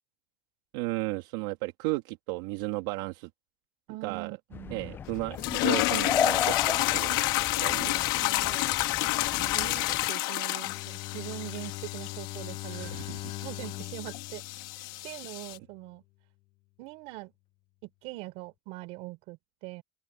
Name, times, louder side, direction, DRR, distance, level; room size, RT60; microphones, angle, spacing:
voice 1, 0.7-3.3 4.0-4.3 4.7-8.1 12.7-13.3 14.9-15.0, right 22 dB, 85° right, 2.2 m, -34 dB
voice 2, 3.9-5.0 7.7-12.9 13.4-14.4 15.0-16.0 16.8-17.3 17.8-19.8, right 21 dB, 65° right, 5.3 m, -42 dB
sound 1, 4.5-10.1, left 7 dB, 20° left, 0.3 m, -35 dB
sound 2, 5.4-15.6, left 21 dB, 90° left, 1.8 m, -30 dB
Bowed string instrument, 10.6-15.6, left 20 dB, 45° left, 0.8 m, -42 dB
open air
cardioid pair, 160°, 11 cm